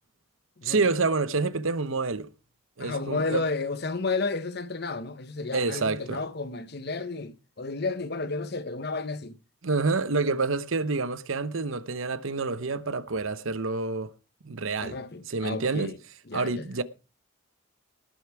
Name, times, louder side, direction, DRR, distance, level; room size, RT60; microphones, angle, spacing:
voice 1, 0.6-2.3 2.8-3.4 5.5-6.2 9.6-14.1 14.4-15.0 15.3-15.9 16.3-16.8, right 3 dB, 80° right, 0.9 m, -28 dB
voice 2, 2.8-9.4 14.8-16.0 16.3-16.7, left 3 dB, 50° left, 1.0 m, -32 dB
19.0 x 6.9 x 4.7 m
head